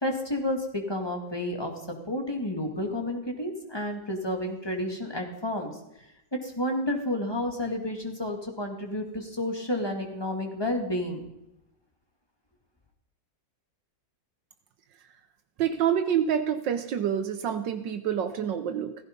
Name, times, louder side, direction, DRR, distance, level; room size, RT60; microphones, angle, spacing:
voice 1, 0.0-1.7 2.1-5.7 6.4-11.3, left 1 dB, 15° left, 2 dB, 2.3 m, -30 dB
voice 2, 15.6-18.9, right 9 dB, 80° right, 8 dB, 1.6 m, -27 dB
16.5 x 15.5 x 5.4 m, 0.90 s
omnidirectional pair, 1.9 m